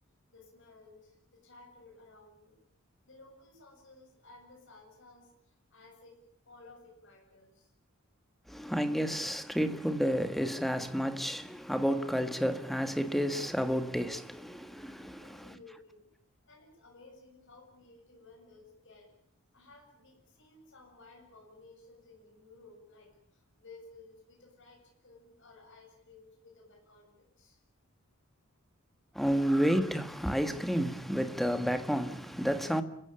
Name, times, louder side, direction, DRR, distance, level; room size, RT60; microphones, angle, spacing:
voice 1, 0.3-2.6 3.0-6.2 6.4-7.7 15.2-16.0 16.4-19.1 19.5-27.6, left 3 dB, 60° left, 7.8 m, -56 dB
voice 2, 8.5-15.4 29.1-32.8, equal, ahead, 1.5 m, -31 dB
30.0 x 15.5 x 8.8 m
head